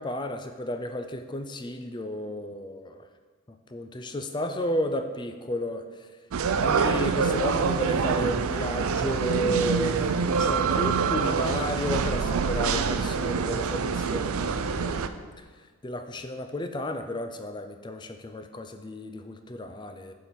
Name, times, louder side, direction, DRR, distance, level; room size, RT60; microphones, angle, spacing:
voice 1, 0.0-3.0 3.7-5.8 6.6-15.1 15.8-20.1, equal, 20° left, 7 dB, 0.5 m, -32 dB
sound 1, 6.3-15.1, right 5 dB, 75° right, 0.4 m, -26 dB
7.3 x 4.5 x 6.8 m, 1.4 s
head